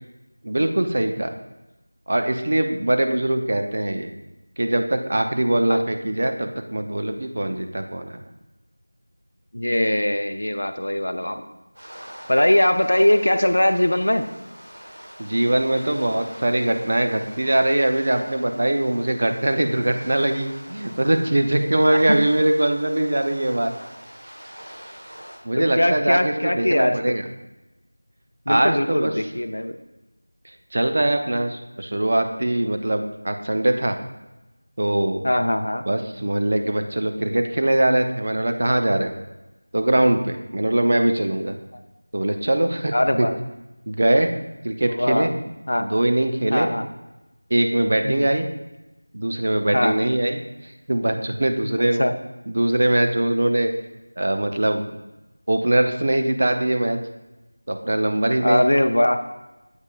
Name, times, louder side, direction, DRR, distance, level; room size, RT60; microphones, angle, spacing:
voice 1, 0.4-1.3 2.1-4.1 4.6-8.2 15.2-23.7 25.4-27.2 28.5-29.1 30.7-34.0 34.8-35.2 35.8-39.1 39.7-41.5 42.1-43.3 43.9-44.3 44.6-45.3 45.8-46.7 47.5-48.5 49.1-52.0 52.5-53.7 54.2-54.9 55.5-57.0 57.7-58.6, right 1 dB, 40° right, 6 dB, 0.5 m, -22 dB
voice 2, 9.5-11.5 12.3-14.3 21.9-22.2 25.5-27.1 28.5-29.8 35.2-35.8 42.9-43.3 44.9-45.3 45.7-45.9 46.5-46.9 48.0-48.3 49.7-50.0 52.0-52.1 58.4-59.2, left 1 dB, 65° left, 8 dB, 0.5 m, -21 dB
sound 1, 11.7-25.4, equal, 70° right, 1.3 m, -43 dB
8.1 x 5.3 x 2.4 m, 1.0 s
figure-of-eight pair, 175°, 0 cm